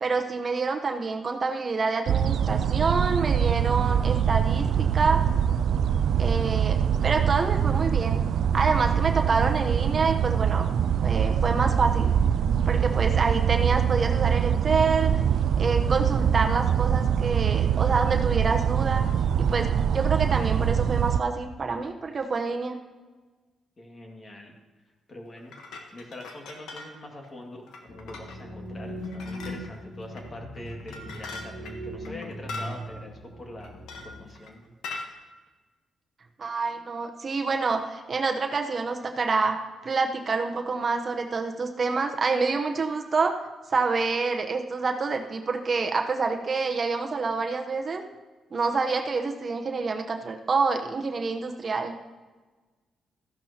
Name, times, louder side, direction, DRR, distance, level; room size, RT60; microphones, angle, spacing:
voice 1, 0.0-5.2 6.2-8.2 8.5-10.7 11.0-12.1 12.7-15.1 15.6-19.0 19.4-22.8 36.4-43.3 43.7-48.0 48.5-52.0, right 4 dB, 45° right, 4 dB, 0.9 m, -27 dB
sound 1, 2.1-21.2, right 8 dB, 75° right, 0.4 m, -24 dB
voice 2, 23.8-24.5 25.1-25.5 25.9-33.7 34.0-34.6, left 1 dB, 35° left, 1 dB, 2.1 m, -44 dB
sound 2, 25.4-27.0 27.2-27.3 27.7-28.4 29.0-29.8 30.1-30.2 30.6-32.8 33.6-34.5 34.8-35.1, left 3 dB, 85° left, 1.2 m, -40 dB
sound 3, 27.9-34.3, equal, 55° left, 2.1 m, -39 dB
14.0 x 11.0 x 2.9 m, 1.3 s
cardioid pair, 80°, 0 cm